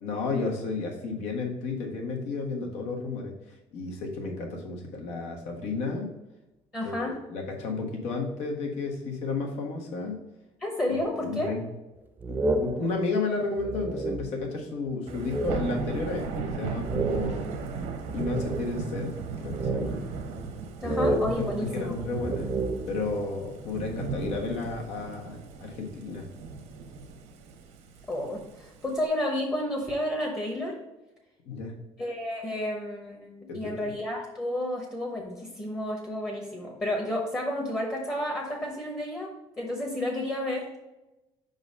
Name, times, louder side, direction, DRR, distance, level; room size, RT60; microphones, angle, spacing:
voice 1, 0.0-3.3 3.7-6.1 6.8-10.2 10.9-11.0 11.2-11.6 12.3-17.5 18.1-19.1 19.4-20.0 20.8-22.5 22.9-26.3 31.5-31.7 33.5-33.9, left 3 dB, 75° left, 1 dB, 1.4 m, -32 dB
voice 2, 6.7-7.2 10.6-11.5 20.8-21.9 28.1-30.8 32.0-40.8, left 1 dB, 20° left, -1 dB, 1.0 m, -31 dB
sound 1, 12.2-14.7 15.1-16.0 16.3-16.4 16.8-19.0 19.5-20.6 20.8-23.2, right 2 dB, 15° right, 0.3 m, -31 dB
Thunder / Rain, 15.1-29.1, right 5 dB, 85° right, 0.9 m, -36 dB
5.3 x 4.0 x 5.3 m, 0.99 s
cardioid pair, 150°, 11 cm